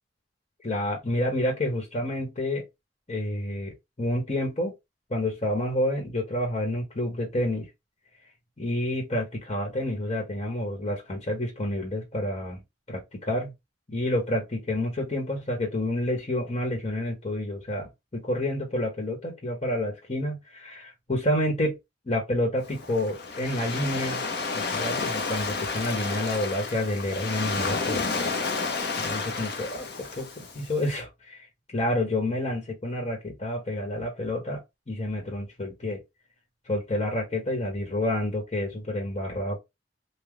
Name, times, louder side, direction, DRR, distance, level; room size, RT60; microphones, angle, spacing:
voice 1, 0.6-2.6 3.1-4.7 5.1-7.7 8.6-12.6 12.9-13.5 13.9-21.7 22.0-24.2 24.5-28.0 29.0-34.6 34.9-36.0 36.7-39.6, left 1 dB, 35° left, 1.3 m, -29 dB
Waves surf, 22.6-30.9, left 4 dB, 65° left, 0.9 m, -31 dB
3.9 x 2.3 x 3.1 m
head